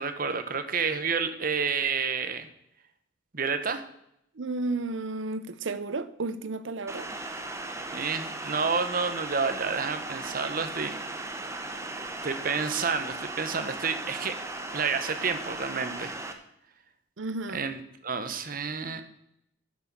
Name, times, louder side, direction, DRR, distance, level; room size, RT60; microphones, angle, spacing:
voice 1, 0.0-2.5 3.3-3.8 7.9-11.0 12.2-14.3 14.7-16.2 17.5-19.0, right 5 dB, 45° right, 1.1 m, -29 dB
voice 2, 4.4-7.1 17.2-17.6, right 3 dB, 75° right, 0.7 m, -32 dB
sound 1, 6.9-16.3, right 2 dB, 15° right, 1.0 m, -37 dB
10.5 x 6.3 x 7.0 m
head